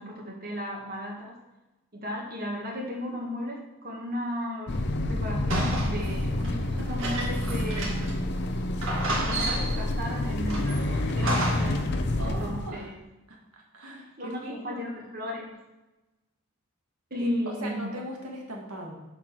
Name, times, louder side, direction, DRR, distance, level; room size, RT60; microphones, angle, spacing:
voice 1, 0.0-1.4 1.9-8.3 9.1-11.8 12.2-13.0 14.2-15.5 17.1-17.9, equal, 45° right, -1 dB, 1.9 m, -35 dB
sound 1, 4.7-12.7, left 1 dB, 50° left, 0.7 m, -28 dB
sound 2, 5.5-8.2 8.5-8.6 8.8-9.9 10.5-11.8, right 1 dB, 60° right, 2.2 m, -31 dB
voice 2, 12.2-12.9 13.3-14.8 17.2-18.9, right 1 dB, 90° right, -1 dB, 2.0 m, -39 dB
7.8 x 4.7 x 6.1 m, 1.0 s
head